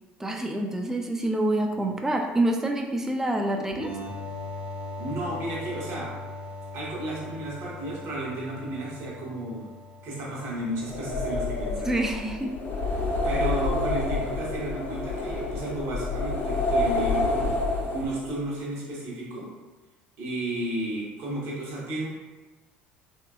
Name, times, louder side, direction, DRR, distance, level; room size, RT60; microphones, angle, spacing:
voice 1, 0.2-3.9 11.8-12.5, right 1 dB, 10° right, 2 dB, 0.4 m, -27 dB
sound 1, 3.7-11.2, left 2 dB, 80° right, 1.2 m, -40 dB
voice 2, 5.0-6.1 6.7-9.7 10.0-11.9 13.2-17.6 17.9-19.5 20.2-22.1, right 1 dB, 55° right, -5 dB, 1.1 m, -33 dB
sound 2, 10.8-18.4, left 2 dB, 40° left, 0.6 m, -28 dB
3.3 x 2.8 x 2.3 m, 1.2 s
figure-of-eight pair, 60°, 6 cm